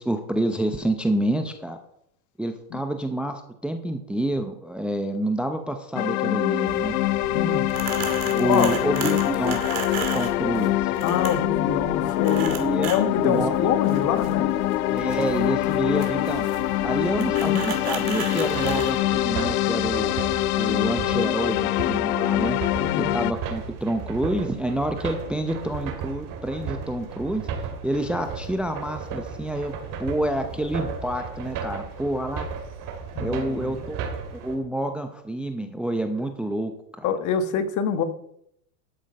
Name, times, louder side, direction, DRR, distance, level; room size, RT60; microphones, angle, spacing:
voice 1, 0.0-1.8 2.4-6.9 8.2-9.6 10.1-10.9 12.5-12.9 13.2-13.7 14.9-16.4 16.8-20.3 20.6-22.6 23.1-27.4 27.8-29.7 30.0-32.5 33.2-34.0 34.3-37.1, right 1 dB, ahead, 7 dB, 0.7 m, -28 dB
sound 1, 5.9-23.3, left 16 dB, 80° left, 0.6 m, -24 dB
sound 2, 6.6-19.0, right 8 dB, 70° right, 2.6 m, -35 dB
voice 2, 7.3-7.7 8.4-8.7 11.0-12.6 12.8-14.6 22.8-23.1 33.1-33.8 37.0-38.0, left 7 dB, 40° left, 10 dB, 1.4 m, -26 dB
sound 3, 18.5-34.6, right 6 dB, 45° right, 2.5 m, -35 dB
12.5 x 6.3 x 5.3 m, 0.73 s
supercardioid pair, 115°, 45 cm